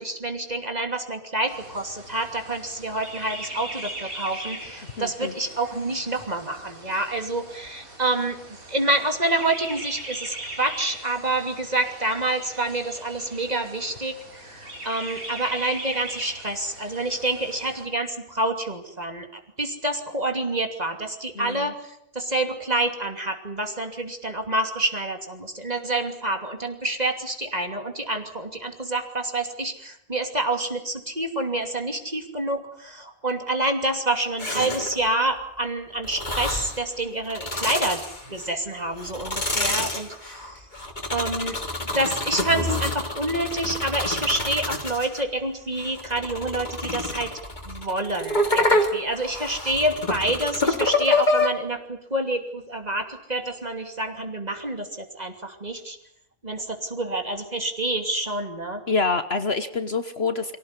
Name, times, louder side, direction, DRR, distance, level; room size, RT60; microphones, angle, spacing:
voice 1, 0.0-8.4 8.7-38.0 38.3-40.6 41.1-41.6 41.9-47.3 47.6-56.0 56.4-58.8, right 2 dB, 30° right, 5 dB, 2.9 m, -28 dB
sound 1, 1.5-17.8, right 1 dB, 85° right, 5.2 m, -40 dB
voice 2, 5.0-5.3 21.4-21.7 58.9-60.6, left 4 dB, 50° left, 10 dB, 1.4 m, -26 dB
sound 2, 34.4-35.1 36.0-36.8 37.2-38.5 39.0-45.2 45.8-51.5, left 2 dB, 30° left, 3.2 m, -27 dB
24.5 x 17.5 x 9.8 m, 0.76 s
omnidirectional pair, 1.4 m